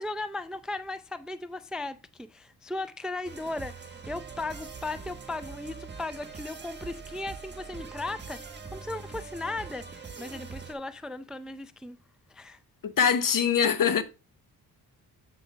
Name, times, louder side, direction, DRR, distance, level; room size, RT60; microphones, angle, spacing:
voice 1, 0.0-8.4 8.7-12.0 12.3-12.6, left 2 dB, ahead, 0.4 m, -37 dB
sound 1, 3.2-10.7, right 5 dB, 25° right, 1.5 m, -43 dB
voice 2, 12.8-14.0, left 7 dB, 55° left, 1.0 m, -23 dB
8.2 x 5.1 x 3.3 m
cardioid pair, 70°, 39 cm